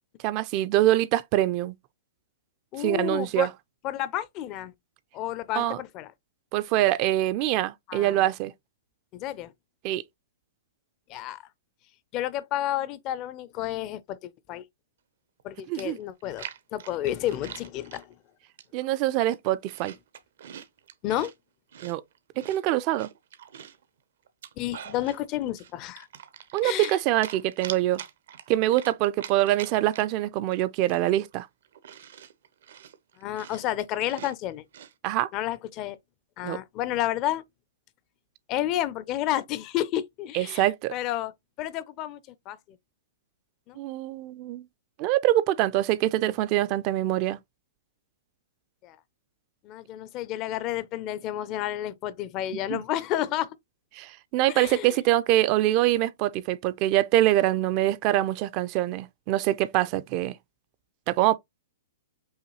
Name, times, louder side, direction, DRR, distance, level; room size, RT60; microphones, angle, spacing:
voice 1, 0.2-1.7 2.8-3.5 5.6-5.8 6.5-8.5 9.8-10.0 15.7-16.0 18.7-19.9 21.8-22.0 22.4-23.1 26.5-28.0 28.5-31.5 35.0-35.3 36.4-36.6 40.3-40.9 43.8-44.6 45.0-47.4 52.7-52.8 53.9-60.3 61.1-61.4, right 14 dB, 40° right, 0.4 m, -24 dB
voice 2, 2.7-3.5 3.8-4.7 5.1-6.1 7.9-8.2 9.1-9.5 11.1-11.4 12.1-14.6 15.4-18.2 21.0-21.3 24.6-26.1 26.6-26.9 33.2-34.6 35.3-36.0 36.4-37.4 38.5-41.3 41.6-42.2 42.5-42.8 43.7-43.8 48.8-49.0 49.6-53.5 54.5-54.9, left 13 dB, 35° left, 0.4 m, -31 dB
Chewing mastication, 15.4-15.5 15.8-18.0 18.6-18.9 19.3-21.3 21.7-23.8 24.3-25.2 25.6-27.0 27.2-30.2 30.5-30.6 30.9-34.9, right 9 dB, 70° right, 0.7 m, -44 dB
5.5 x 2.3 x 3.0 m
hypercardioid pair, 135°, 0 cm